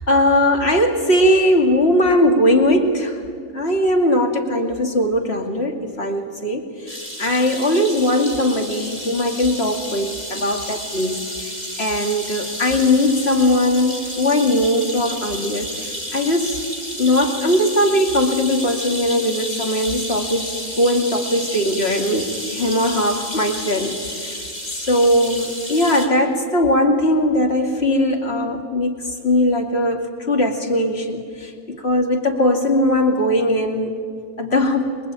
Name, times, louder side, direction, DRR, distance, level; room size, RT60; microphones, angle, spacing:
voice 1, 0.1-3.2 3.5-16.6 17.0-24.5 24.7-34.0 34.4-34.9, left 1 dB, 45° left, 3 dB, 2.8 m, -19 dB
sound 1, 6.9-26.1, equal, 30° left, 3.7 m, -31 dB
26.5 x 22.0 x 8.9 m, 2.2 s
omnidirectional pair, 1.5 m